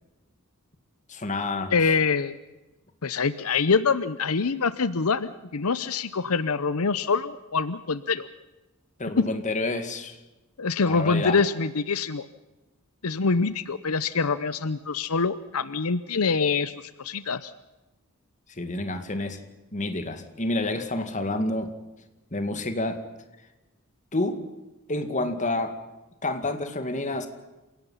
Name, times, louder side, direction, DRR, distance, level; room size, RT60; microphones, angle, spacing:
voice 1, 1.1-1.7 9.0-10.2 10.8-11.4 18.6-19.4 19.7-21.7 22.3-23.0 24.1-24.4 24.9-25.8 26.2-27.3, left 2 dB, 35° left, 8 dB, 2.2 m, -28 dB
voice 2, 1.7-2.4 3.0-8.3 9.2-9.3 10.6-12.3 13.0-16.7 17.0-17.5, left 4 dB, 80° left, 14 dB, 0.8 m, -25 dB
28.0 x 17.5 x 5.7 m, 1.1 s
head